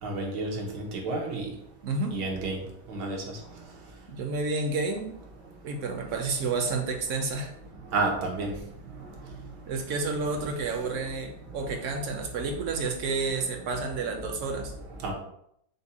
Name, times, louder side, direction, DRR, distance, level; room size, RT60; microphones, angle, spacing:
voice 1, 0.0-1.5 2.1-2.6 2.9-3.6 6.6-6.7 7.7-8.6 8.9-9.5 9.9-11.0 12.2-12.6 13.1-13.8 14.2-15.1, right 3 dB, 85° right, 0 dB, 1.6 m, -34 dB
voice 2, 1.8-2.2 4.1-5.1 5.6-7.5 9.7-14.7, right 3 dB, 60° right, 3 dB, 0.8 m, -30 dB
5.2 x 2.2 x 4.1 m, 0.73 s
omnidirectional pair, 1.8 m